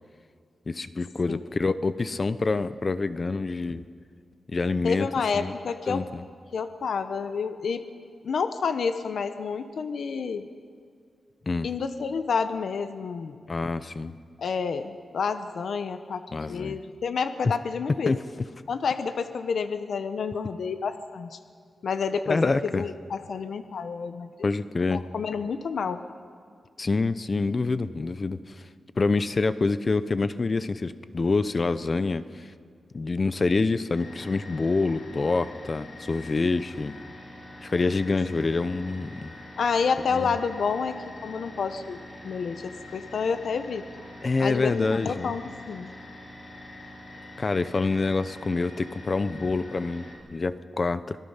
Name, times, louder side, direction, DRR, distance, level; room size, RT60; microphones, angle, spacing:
voice 1, 0.7-3.9 4.5-5.1 5.3-5.5 5.9-6.2 11.5-11.7 13.5-14.1 16.3-16.8 18.1-18.2 22.3-22.8 24.4-25.1 26.8-28.7 29.0-32.5 32.9-36.9 37.6-39.3 40.1-40.3 44.2-45.3 47.4-51.2, left 3 dB, 35° left, 13 dB, 0.7 m, -26 dB
voice 2, 4.8-6.0 6.5-7.8 8.2-10.5 11.6-13.4 14.4-16.2 16.5-18.1 18.7-21.4 21.8-24.3 24.9-26.0 39.6-42.0 42.2-43.9 44.4-45.9, left 5 dB, 70° left, 10 dB, 0.9 m, -29 dB
sound 1, 33.9-50.2, left 1 dB, 55° left, 5.5 m, -44 dB
25.5 x 18.5 x 5.7 m, 2.2 s
wide cardioid pair, 110°, 0 cm